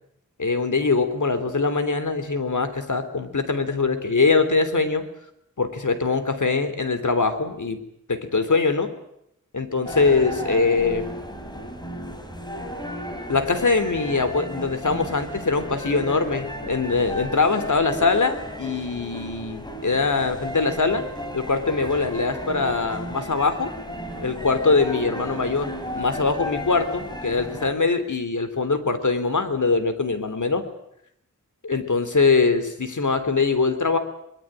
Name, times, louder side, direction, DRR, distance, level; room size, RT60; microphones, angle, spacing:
voice 1, 0.4-5.0 5.6-7.8 8.1-8.9 9.5-11.1 13.3-21.1 21.3-23.7 24.2-30.6 31.6-34.0, left 4 dB, 70° left, 10 dB, 3.4 m, -22 dB
sound 1, 9.9-27.7, equal, 15° left, 4.5 m, -34 dB
23.5 x 21.5 x 8.9 m, 0.77 s
wide cardioid pair, 80°, 32 cm